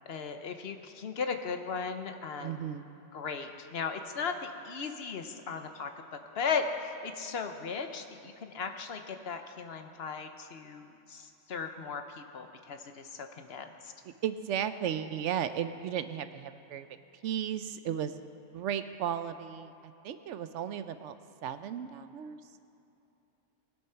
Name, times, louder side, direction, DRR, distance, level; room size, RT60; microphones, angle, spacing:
voice 1, 0.1-2.7 3.1-5.9 6.4-13.9, left 5 dB, 60° left, 7 dB, 1.0 m, -37 dB
voice 2, 2.4-2.9 14.0-16.9 17.2-18.2 18.5-19.7 20.0-21.2 21.4-22.4, right 9 dB, 75° right, 11 dB, 0.9 m, -35 dB
20.0 x 8.0 x 5.7 m, 2.8 s
omnidirectional pair, 1.3 m